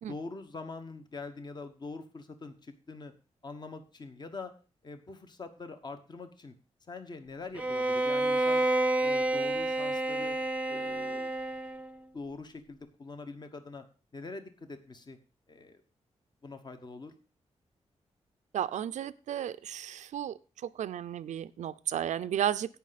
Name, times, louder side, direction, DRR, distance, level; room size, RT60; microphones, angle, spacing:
voice 1, 0.0-3.1 3.4-4.5 4.8-6.5 6.9-8.6 9.0-10.4 10.7-11.3 12.1-13.8 14.1-15.2 15.5-15.8 16.4-17.1, left 3 dB, 35° left, 8 dB, 1.2 m, -44 dB
Bowed string instrument, 7.6-12.0, right 2 dB, 10° right, 0.6 m, -29 dB
voice 2, 18.5-20.3 20.7-22.8, right 10 dB, 85° right, 14 dB, 0.4 m, -33 dB
17.0 x 5.7 x 4.1 m, 0.34 s
wide cardioid pair, 110°, 12 cm